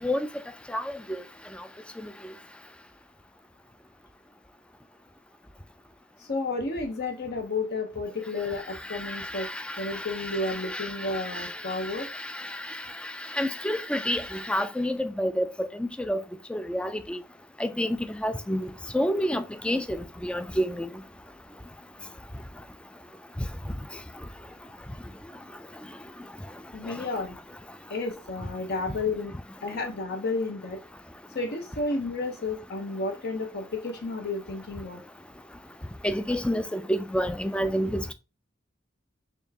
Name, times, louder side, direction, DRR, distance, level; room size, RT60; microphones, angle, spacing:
voice 1, 0.7-1.2 2.0-2.3 8.9-16.2 16.5-17.2 17.6-20.9 26.8-26.9 36.0-38.1, equal, 5° left, 0.3 m, -30 dB
voice 2, 6.2-9.5 9.8-12.1 26.7-27.4 27.9-29.3 29.6-30.8 31.3-35.0, left 3 dB, 55° left, 0.7 m, -31 dB
4.4 x 3.1 x 2.7 m
head